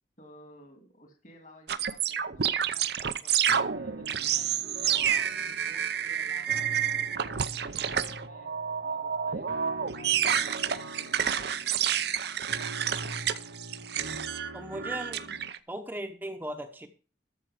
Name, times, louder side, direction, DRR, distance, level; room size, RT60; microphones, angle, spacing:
voice 1, 0.2-8.5 8.8-12.0, left 1 dB, 45° left, 3 dB, 2.4 m, -55 dB
sound 1, 1.7-15.6, right 8 dB, 60° right, 0.7 m, -29 dB
sound 2, 3.5-15.5, right 1 dB, 85° right, 1.5 m, -44 dB
voice 2, 14.5-15.3 15.7-16.9, right 1 dB, 10° right, 4 dB, 0.9 m, -38 dB
13.5 x 6.3 x 4.9 m, 0.36 s
head